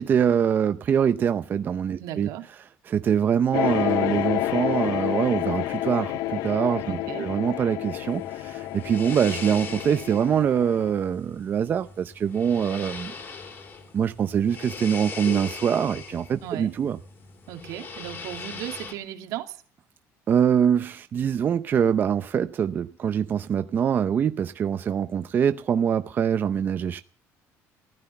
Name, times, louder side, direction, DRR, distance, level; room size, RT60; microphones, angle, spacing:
voice 1, 0.0-2.3 2.9-13.1 13.9-17.0 20.3-27.0, right 8 dB, 35° right, 0.7 m, -24 dB
voice 2, 2.0-2.5 6.8-7.3 16.4-16.7 17.5-19.6, right 12 dB, 85° right, 2.7 m, -36 dB
sound 1, 3.5-10.9, left 15 dB, 80° left, 0.7 m, -29 dB
sound 2, 8.1-18.9, left 5 dB, 35° left, 3.3 m, -40 dB
15.5 x 13.0 x 7.0 m
cardioid pair, 160°, 6 cm